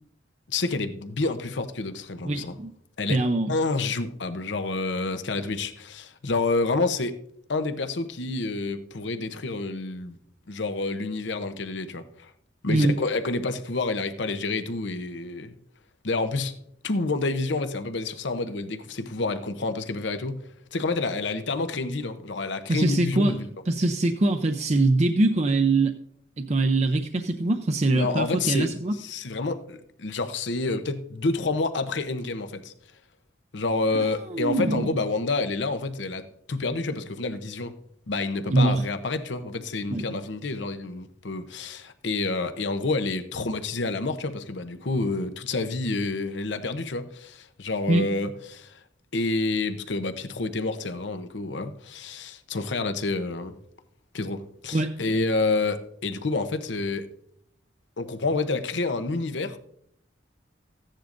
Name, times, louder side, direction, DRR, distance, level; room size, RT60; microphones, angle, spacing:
voice 1, 0.5-2.5 3.0-3.2 3.5-7.2 7.5-10.2 10.5-12.3 12.6-15.6 16.0-16.5 16.8-20.4 20.7-23.5 27.9-28.7 29.0-32.7 33.5-37.8 38.1-48.8 49.1-53.5 54.1-57.1 58.0-59.6, left 3 dB, 75° left, 0.8 m, -28 dB
voice 2, 2.2-2.7 3.1-3.5 12.7-13.0 22.7-23.4 23.7-25.9 26.4-28.9 33.9-34.9 38.5-38.8 39.9-40.2 47.9-48.1 54.7-54.9, right 2 dB, 35° right, 0.5 m, -23 dB
15.0 x 10.0 x 2.6 m
head